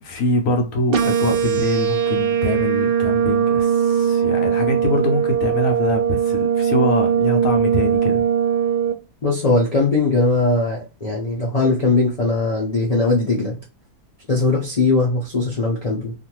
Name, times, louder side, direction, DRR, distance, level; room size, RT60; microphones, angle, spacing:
voice 1, 0.0-8.2, left 2 dB, 70° left, 0.9 m, -24 dB
sound 1, 0.9-8.9, right 8 dB, 85° right, 0.5 m, -20 dB
voice 2, 9.2-13.6 14.3-16.1, left 2 dB, 45° left, 0.5 m, -19 dB
2.5 x 2.4 x 2.9 m
omnidirectional pair, 1.6 m